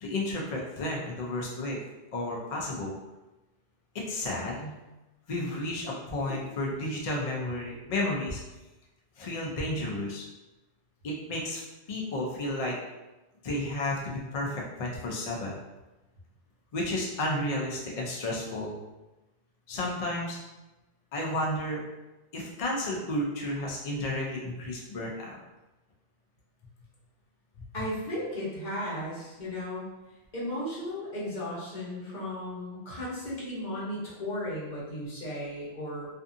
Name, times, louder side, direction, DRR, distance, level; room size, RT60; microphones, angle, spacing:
voice 1, 0.0-1.8 2.1-2.9 4.1-4.8 5.3-8.4 9.2-10.2 11.0-11.6 11.9-12.8 13.4-15.6 16.7-18.7 19.7-20.4 21.1-21.8 22.3-25.4, left 1 dB, 70° left, -3 dB, 0.3 m, -32 dB
voice 2, 27.7-29.8 30.3-36.1, left 1 dB, 40° left, -7 dB, 1.0 m, -35 dB
2.5 x 2.5 x 2.5 m, 1.1 s
omnidirectional pair, 1.2 m